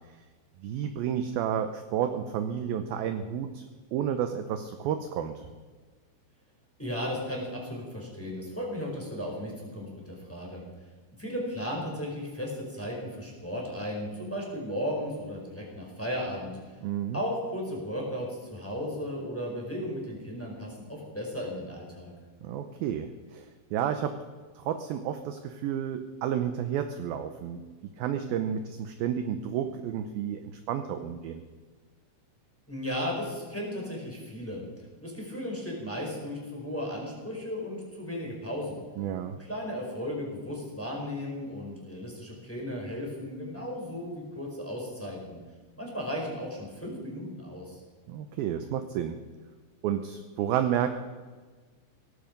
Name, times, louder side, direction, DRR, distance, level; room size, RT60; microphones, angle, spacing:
voice 1, 0.6-3.6 3.9-5.5 16.8-17.2 22.4-24.2 24.6-27.6 28.0-30.4 30.7-31.4 39.0-39.4 48.1-49.2 49.8-50.9, right 9 dB, 80° right, 8 dB, 2.2 m, -31 dB
voice 2, 6.8-10.6 11.2-16.5 17.1-22.1 32.7-34.6 35.0-38.8 39.2-45.4 45.8-47.8, equal, 5° left, -1 dB, 4.0 m, -35 dB
17.5 x 15.0 x 5.3 m, 1.4 s
omnidirectional pair, 5.2 m